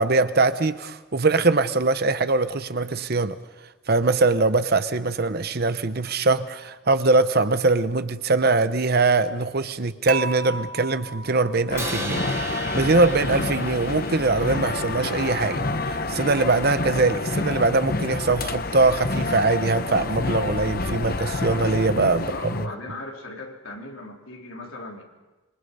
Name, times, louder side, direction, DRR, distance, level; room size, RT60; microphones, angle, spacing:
voice 1, 0.0-3.4 3.9-22.3, right 3 dB, 45° right, 12 dB, 0.8 m, -22 dB
Dishes pots and pans / Chink clink, 10.1-12.2, right 4 dB, 90° right, 0.8 m, -34 dB
sound 1, 11.7-22.7, left 3 dB, 45° left, 0.9 m, -28 dB
Crash cymbal, 11.8-16.0, right 3 dB, 10° right, 1.1 m, -37 dB
voice 2, 22.1-25.0, left 2 dB, 70° left, 0 dB, 3.8 m, -38 dB
26.5 x 23.0 x 5.5 m, 1.2 s
head